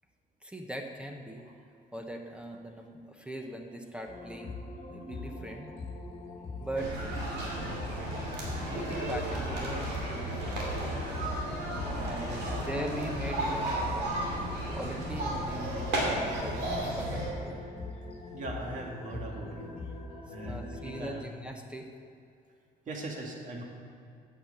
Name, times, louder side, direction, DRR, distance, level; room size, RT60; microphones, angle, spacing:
voice 1, 0.4-1.5 1.9-4.6 4.9-5.7 6.6-7.1 8.6-11.1 12.0-14.2 14.7-17.5 20.4-21.9, equal, 5° right, 3 dB, 1.0 m, -40 dB
sound 1, 4.1-21.1, left 3 dB, 35° left, 1.6 m, -42 dB
sound 2, 6.8-17.3, right 1 dB, 85° right, 2.8 m, -33 dB
voice 2, 11.9-12.3 18.3-19.7 20.3-21.2 22.9-23.6, right 2 dB, 50° right, 1 dB, 1.9 m, -40 dB
8.7 x 6.6 x 7.5 m, 2.5 s
cardioid pair, 110°, 17 cm